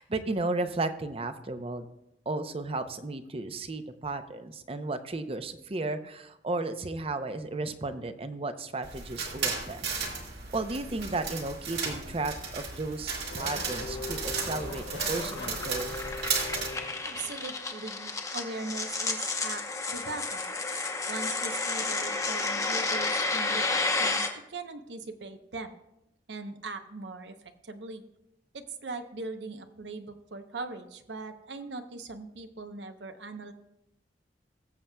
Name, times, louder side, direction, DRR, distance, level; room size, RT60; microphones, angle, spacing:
voice 1, 0.0-1.9 2.3-10.0 10.5-15.9, right 2 dB, 35° right, 9 dB, 0.6 m, -34 dB
sound 1, 8.8-16.7, right 5 dB, 65° right, 1.8 m, -34 dB
Race car auto racing / Accelerating revving vroom, 12.1-17.7, left 3 dB, 70° left, 1.2 m, -41 dB
sound 2, 13.6-24.3, left 3 dB, 20° left, 0.8 m, -32 dB
voice 2, 17.0-20.5 21.1-25.7 26.3-28.0 28.5-33.5, right 3 dB, 80° right, 8 dB, 0.8 m, -40 dB
19.5 x 7.3 x 2.2 m, 0.85 s
head